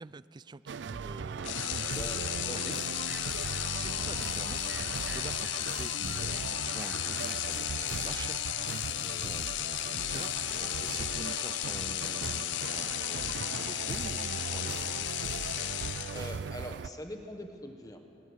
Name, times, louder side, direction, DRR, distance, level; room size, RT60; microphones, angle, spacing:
voice 1, 0.0-2.2 2.5-2.7 3.6-8.5 8.9-15.1, right 3 dB, 25° right, 17 dB, 0.4 m, -47 dB
sound 1, 0.7-16.9, right 5 dB, 85° right, 0.4 m, -39 dB
sound 2, 1.4-16.5, left 15 dB, 85° left, 0.4 m, -34 dB
voice 2, 1.9-2.8 9.0-9.3 10.6-10.8 16.1-18.0, left 1 dB, 20° left, 5 dB, 1.5 m, -43 dB
20.5 x 20.0 x 6.5 m, 2.8 s
head